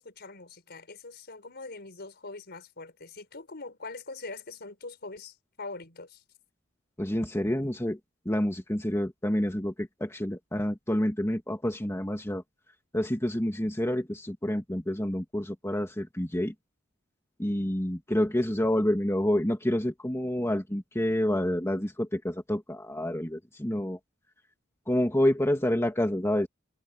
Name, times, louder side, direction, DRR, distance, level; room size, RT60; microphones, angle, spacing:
voice 1, 0.0-6.2, left 3 dB, 55° left, 4.8 m, -43 dB
voice 2, 7.0-8.0 8.3-12.4 12.9-16.5 17.4-24.0 24.9-26.5, left 1 dB, 15° left, 2.1 m, -28 dB
head